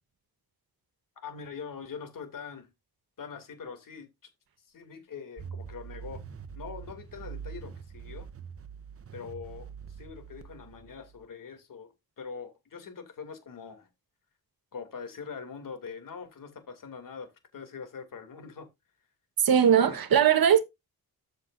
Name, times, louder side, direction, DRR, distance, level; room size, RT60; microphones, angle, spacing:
voice 1, 1.2-2.7 3.2-4.1 4.7-6.2 6.5-8.3 9.1-13.9 14.7-18.7 19.9-20.0, left 6 dB, 60° left, 2.7 m, -43 dB
sound 1, 5.4-11.2, right 7 dB, 40° right, 0.9 m, -44 dB
voice 2, 19.4-20.6, right 8 dB, 75° right, 1.3 m, -20 dB
13.5 x 6.5 x 2.6 m
wide cardioid pair, 175°, 37 cm